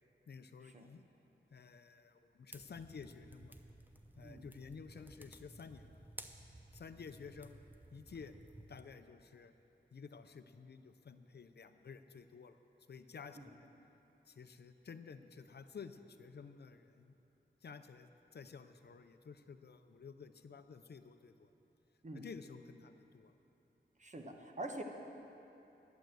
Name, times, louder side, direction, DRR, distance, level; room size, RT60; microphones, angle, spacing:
voice 1, 0.3-1.0 1.5-3.6 4.2-6.0 6.7-7.6 7.9-8.3 8.7-9.5 9.9-12.6 12.9-13.7 14.3-17.1 17.6-21.5 22.1-23.4, left 5 dB, 60° left, 9 dB, 0.6 m, -52 dB
sound 1, 2.5-8.8, right 1 dB, 10° right, 0.7 m, -56 dB
voice 2, 24.0-24.8, right 1 dB, 40° right, 3 dB, 1.2 m, -45 dB
11.5 x 9.3 x 7.7 m, 3.0 s
wide cardioid pair, 95°, 19 cm